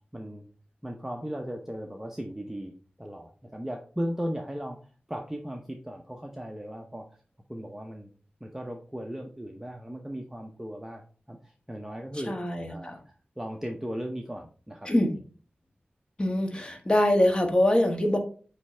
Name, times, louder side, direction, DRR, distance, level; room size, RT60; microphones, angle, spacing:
voice 1, 0.1-0.5 0.8-2.7 3.0-7.1 7.5-8.1 8.4-11.0 11.3-12.3 12.7-13.0 13.4-14.9, equal, 10° right, 1 dB, 0.8 m, -37 dB
voice 2, 12.3-13.0 14.8-15.1 16.2-18.2, left 1 dB, 25° left, 4 dB, 1.4 m, -24 dB
8.1 x 3.3 x 4.3 m, 0.40 s
wide cardioid pair, 85°, 4 cm